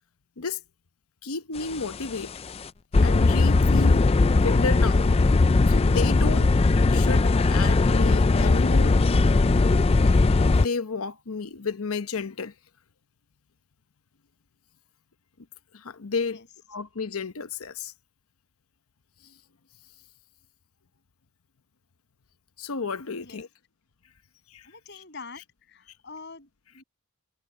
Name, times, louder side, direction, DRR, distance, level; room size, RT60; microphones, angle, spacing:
voice 1, 1.2-2.3 3.0-4.0 4.4-5.0 5.7-6.5 6.9-9.0 10.4-12.5 15.7-16.4 16.7-17.9 19.2-19.3 22.6-23.5 24.5-24.7, left 4 dB, 75° left, 0.9 m, -32 dB
sound 1, 1.7-2.1 2.5-2.6 2.9-10.7, left 3 dB, 25° left, 0.4 m, -19 dB
voice 2, 23.0-23.4 24.6-26.8, left 4 dB, 50° left, 7.5 m, -45 dB
head